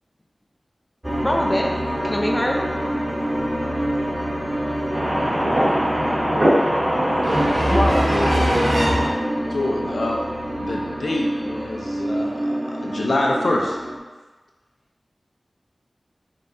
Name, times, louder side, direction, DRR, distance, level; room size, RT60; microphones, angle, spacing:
sound 1, 1.0-14.0, equal, 20° right, 0.6 m, -27 dB
voice 1, 1.2-1.7 2.0-2.6 7.7-8.1, left 1 dB, 20° left, 0 dB, 0.6 m, -22 dB
voice 2, 4.9-9.1, equal, 55° right, -8 dB, 1.4 m, -20 dB
voice 3, 9.5-10.2 10.6-13.8, left 2 dB, 85° left, -1 dB, 0.6 m, -25 dB
5.3 x 3.0 x 2.7 m, 1.2 s
wide cardioid pair, 50°, 0 cm